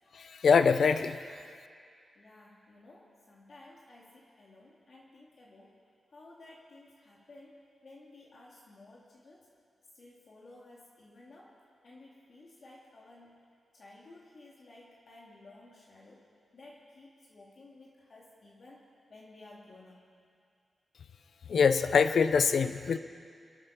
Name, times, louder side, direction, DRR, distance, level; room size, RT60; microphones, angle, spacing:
voice 1, 0.1-1.2 21.5-23.0, left 6 dB, 70° left, 11 dB, 0.6 m, -24 dB
voice 2, 2.2-5.8 6.1-9.5 9.9-11.6 11.8-13.4 13.7-20.1, left 2 dB, 50° left, -4 dB, 2.3 m, -55 dB
26.5 x 8.9 x 5.8 m, 2.3 s
wide cardioid pair, 100°, 0 cm